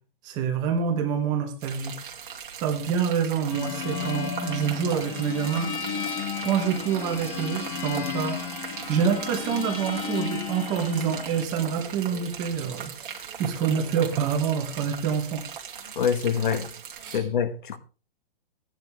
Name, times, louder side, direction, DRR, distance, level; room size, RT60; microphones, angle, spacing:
voice 1, 0.2-2.0 2.6-5.7 6.4-8.4 8.9-12.9 13.4-15.5 17.0-17.2, right 7 dB, 15° right, 1.0 m, -26 dB
sound 1, 1.6-17.2, right 7 dB, 55° right, 2.6 m, -39 dB
sound 2, 3.5-11.4, left 7 dB, 10° left, 0.7 m, -33 dB
voice 2, 15.9-16.7 17.1-17.8, left 7 dB, 55° left, 1.4 m, -25 dB
15.5 x 10.5 x 3.4 m
hypercardioid pair, 180°, 30 cm